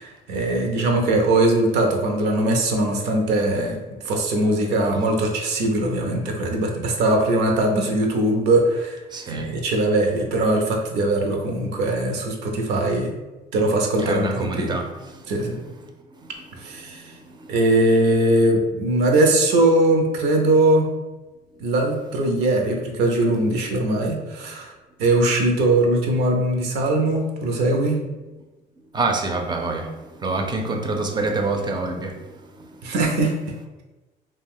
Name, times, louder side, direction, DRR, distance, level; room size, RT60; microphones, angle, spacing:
voice 1, 0.0-3.8 4.0-9.0 9.3-13.1 13.5-14.7 15.3-15.6 16.6-17.0 17.5-20.9 21.6-24.7 25.0-28.0 32.8-33.4, right 1 dB, 85° right, 2 dB, 0.6 m, -21 dB
voice 2, 9.1-9.5 14.0-14.9 28.9-29.9 30.2-32.1, right 3 dB, 25° right, 4 dB, 0.4 m, -25 dB
2.4 x 2.3 x 3.5 m, 1.1 s
cardioid pair, 110°, 17 cm